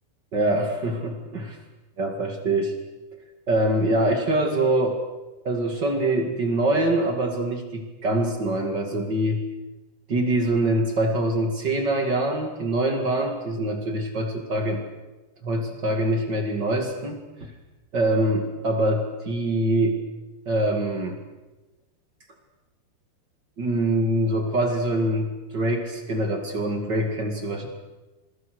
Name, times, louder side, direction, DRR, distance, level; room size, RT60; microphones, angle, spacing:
voice 1, 0.3-1.6 2.0-2.7 3.5-5.0 5.4-9.4 10.1-14.8 15.4-17.5 17.9-20.0 20.4-21.2 23.6-27.7, right 1 dB, 45° right, 4 dB, 1.4 m, -24 dB
27.0 x 22.5 x 6.5 m, 1.1 s
omnidirectional pair, 5.6 m